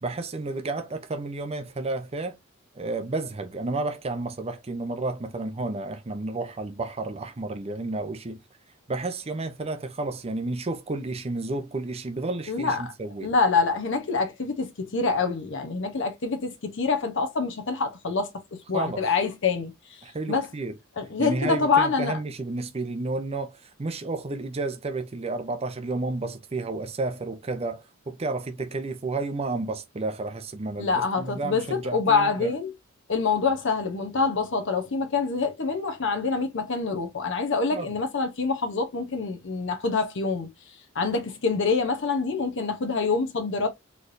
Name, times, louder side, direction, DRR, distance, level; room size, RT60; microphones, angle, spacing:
voice 1, 0.0-2.4 2.7-8.4 8.9-13.3 18.7-19.0 20.0-20.7 21.2-32.5 37.7-37.9, right 2 dB, 30° right, 0.6 m, -31 dB
voice 2, 12.5-12.9 13.2-20.0 20.3-20.5 21.0-22.2 30.8-32.7 33.1-40.5 40.9-43.7, left 4 dB, 60° left, 0.8 m, -26 dB
4.3 x 3.3 x 2.6 m
head